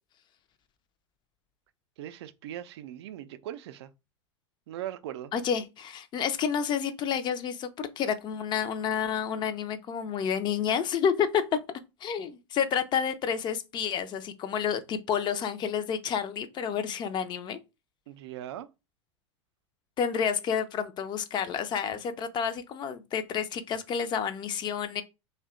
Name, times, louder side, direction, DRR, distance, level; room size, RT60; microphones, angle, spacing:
voice 1, 2.0-3.9 4.7-5.3 18.1-18.7, right 12 dB, 60° right, 0.4 m, -39 dB
voice 2, 5.3-11.4 12.0-17.6 20.0-25.0, left 7 dB, 30° left, 0.5 m, -30 dB
2.6 x 2.2 x 3.7 m
figure-of-eight pair, 90°, 16 cm